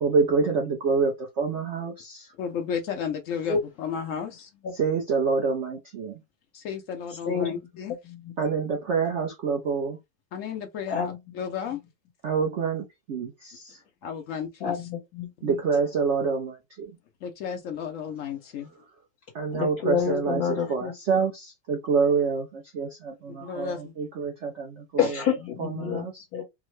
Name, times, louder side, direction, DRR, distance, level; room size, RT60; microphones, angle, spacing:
voice 1, 0.0-2.3 4.7-6.2 8.4-10.0 12.2-13.8 15.4-16.9 19.3-25.2 25.6-26.3, right 5 dB, 80° right, 0.6 m, -27 dB
voice 2, 2.4-4.5 6.5-8.0 10.3-11.8 14.0-14.8 17.2-18.7 23.3-23.9, left 7 dB, 85° left, 0.6 m, -33 dB
voice 3, 7.2-7.6 8.1-8.3 10.9-11.2 14.6-15.5 19.5-20.9 25.0-26.1 26.3-26.4, left 7 dB, 55° left, 1.4 m, -28 dB
3.5 x 2.1 x 3.1 m
omnidirectional pair, 2.0 m